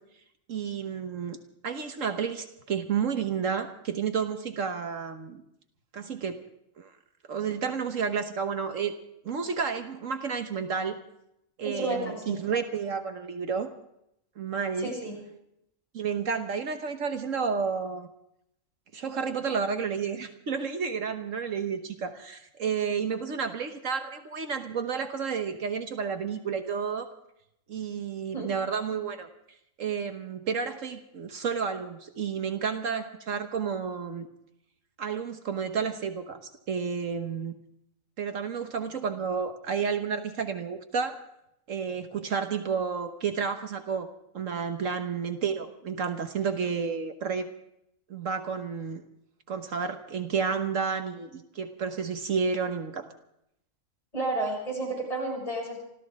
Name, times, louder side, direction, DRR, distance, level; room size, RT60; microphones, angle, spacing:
voice 1, 0.5-1.4 1.6-5.4 5.9-6.4 6.8-6.9 7.3-8.9 9.2-11.0 11.6-13.7 14.4-15.0 15.9-18.1 18.9-27.1 27.7-29.3 29.8-34.3 35.0-36.4 36.7-37.5 38.2-41.2 41.7-44.1 44.3-47.5 48.1-49.0 49.5-53.0, right 6 dB, 70° right, 7 dB, 1.5 m, -31 dB
voice 2, 11.6-12.4 14.8-15.2 28.3-28.5 54.1-55.8, right 2 dB, 25° left, -2 dB, 6.3 m, -31 dB
27.5 x 13.5 x 3.6 m, 0.78 s
omnidirectional pair, 1.4 m